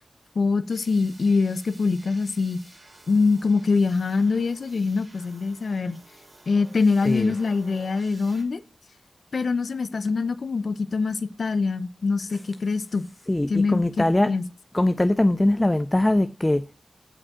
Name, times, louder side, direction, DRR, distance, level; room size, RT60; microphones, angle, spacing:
voice 1, 0.4-2.6 3.1-6.0 6.5-8.6 9.3-13.1 13.5-14.5, left 4 dB, 75° left, 0.6 m, -24 dB
sound 1, 0.7-8.4, right 2 dB, 50° right, 3.7 m, -52 dB
voice 2, 7.1-7.4 13.3-14.4 14.7-16.7, left 1 dB, 20° left, 0.4 m, -22 dB
15.0 x 5.1 x 3.7 m
wide cardioid pair, 85°, 0 cm